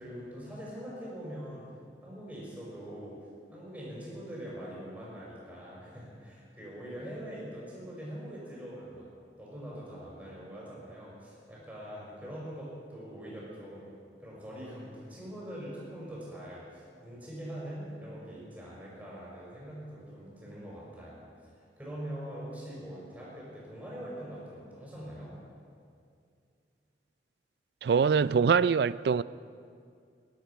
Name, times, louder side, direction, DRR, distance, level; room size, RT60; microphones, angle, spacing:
voice 1, 0.0-1.6 2.0-3.2 3.5-9.1 9.4-13.9 14.2-21.2 21.8-25.4, equal, 10° right, 5.2 m, -43 dB
voice 2, 27.8-29.2, right 6 dB, 65° right, 0.3 m, -24 dB
18.5 x 12.0 x 5.8 m
head